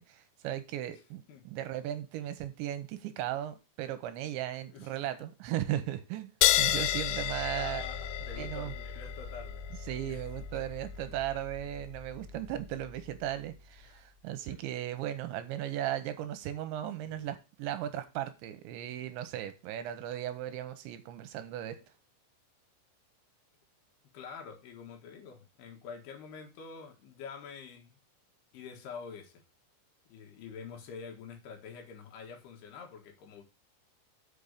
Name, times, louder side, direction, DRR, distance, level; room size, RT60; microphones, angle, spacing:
voice 1, 0.1-6.3 6.6-7.8 8.4-8.7 9.9-21.8, right 12 dB, 80° right, 2.9 m, -36 dB
voice 2, 4.7-5.2 7.5-9.6 10.1-10.2 10.5-10.6 13.8-14.0 14.5-14.6 17.0-17.4 17.8-17.9 24.1-28.0 28.5-29.4 30.1-33.4, left 6 dB, 65° left, 3.1 m, -47 dB
sound 1, 6.4-13.4, left 12 dB, 85° left, 3.3 m, -33 dB
6.9 x 5.5 x 6.5 m
omnidirectional pair, 5.8 m